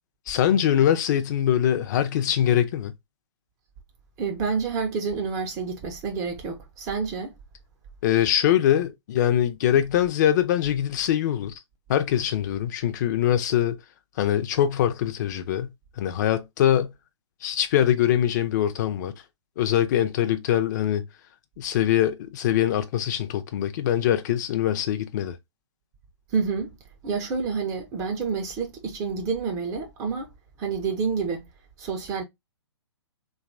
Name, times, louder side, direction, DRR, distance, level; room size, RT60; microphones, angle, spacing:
voice 1, 0.3-2.9 8.0-11.5 11.9-13.8 14.2-16.9 17.4-19.1 19.6-21.0 21.6-25.4, left 10 dB, 40° left, 0.4 m, -23 dB
voice 2, 4.2-7.3 26.3-26.7 27.0-30.3 30.6-31.5 31.8-32.2, right 5 dB, 20° right, 0.4 m, -28 dB
2.8 x 2.3 x 2.5 m
figure-of-eight pair, 130°, 15 cm